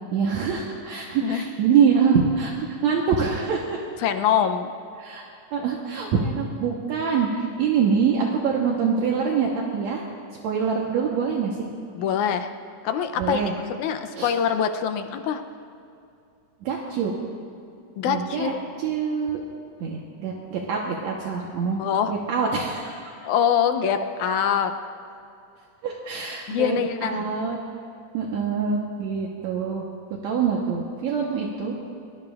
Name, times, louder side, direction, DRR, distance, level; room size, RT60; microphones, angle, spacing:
voice 1, 0.1-3.8 5.0-5.2 5.5-10.0 10.4-11.6 13.2-13.5 14.2-14.3 16.6-17.1 18.1-18.5 18.8-19.4 19.8-21.8 22.1-23.1 25.8-27.6 28.1-29.8 30.2-31.8, right 6 dB, 70° right, -2 dB, 2.3 m, -24 dB
voice 2, 4.0-4.7 12.0-12.5 12.8-13.4 13.8-15.4 18.0-18.5 21.8-22.1 23.2-24.7 26.5-27.2, left 8 dB, 80° left, 7 dB, 2.1 m, -24 dB
23.5 x 19.5 x 2.4 m, 2.6 s
omnidirectional pair, 3.5 m